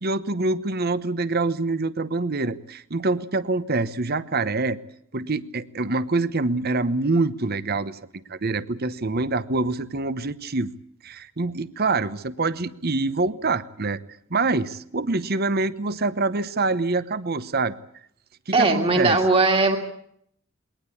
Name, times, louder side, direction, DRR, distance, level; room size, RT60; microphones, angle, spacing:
voice 1, 0.0-4.8 5.1-8.0 8.3-10.7 11.0-14.0 14.3-17.7 18.5-19.2, right 3 dB, 50° right, 15 dB, 1.0 m, -25 dB
voice 2, 18.5-19.8, right 3 dB, 25° right, 3 dB, 2.1 m, -19 dB
22.5 x 19.0 x 8.6 m, 0.70 s
head